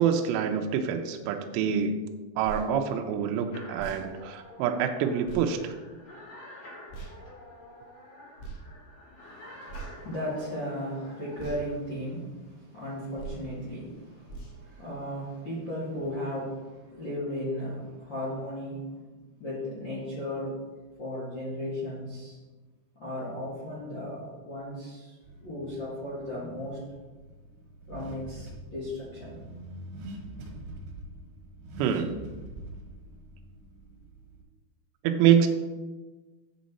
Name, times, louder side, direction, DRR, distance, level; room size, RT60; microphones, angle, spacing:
voice 1, 0.0-2.0 2.4-5.7 31.8-32.1 35.0-35.5, right 8 dB, 80° right, 5 dB, 2.7 m, -26 dB
sound 1, 2.4-2.7 3.7-4.0 5.2-5.5 6.9-7.2 8.4-8.6 9.7-10.1 11.4-11.6 13.2-13.5 14.3-14.6, right 5 dB, 90° left, 3.8 m, -40 dB
sound 2, 3.5-11.7, left 1 dB, 65° left, 1.0 m, -49 dB
voice 2, 9.2-19.1 19.4-20.7 21.0-22.4 22.9-26.8 27.9-29.4, left 1 dB, 45° left, -9 dB, 1.5 m, -36 dB
Car / Accelerating revving vroom, 25.2-34.4, right 1 dB, 65° right, 2.6 m, -44 dB
7.5 x 7.0 x 4.1 m, 1.3 s
omnidirectional pair, 5.3 m